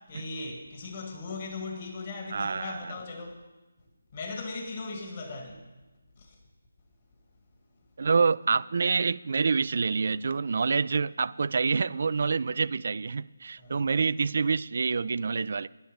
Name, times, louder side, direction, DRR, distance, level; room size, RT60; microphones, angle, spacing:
voice 1, 0.1-3.4 4.1-5.6 6.2-6.4 13.6-14.0, left 3 dB, 35° left, 1.7 m, -38 dB
voice 2, 2.3-2.8 8.0-15.7, right 5 dB, 50° right, 0.3 m, -27 dB
10.5 x 10.0 x 5.2 m
figure-of-eight pair, 160°, 0 cm